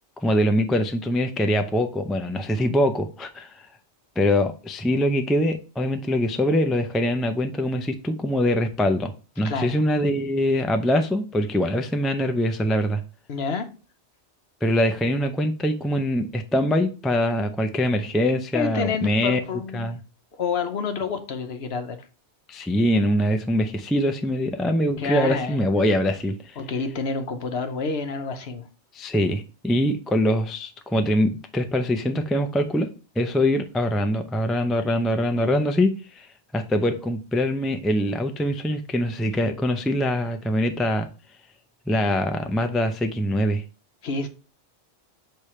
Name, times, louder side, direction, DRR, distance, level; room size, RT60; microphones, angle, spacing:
voice 1, 0.2-3.6 4.2-13.0 14.6-20.0 22.5-26.6 28.9-32.9 33.2-36.3 36.5-41.1 41.9-43.6, equal, ahead, 0.3 m, -23 dB
voice 2, 9.4-9.8 13.3-13.7 18.5-19.9 20.4-22.0 25.0-25.6 26.6-28.6 35.4-35.5 44.0-44.3, left 4 dB, 65° left, 1.1 m, -28 dB
6.7 x 3.4 x 4.3 m
omnidirectional pair, 1.2 m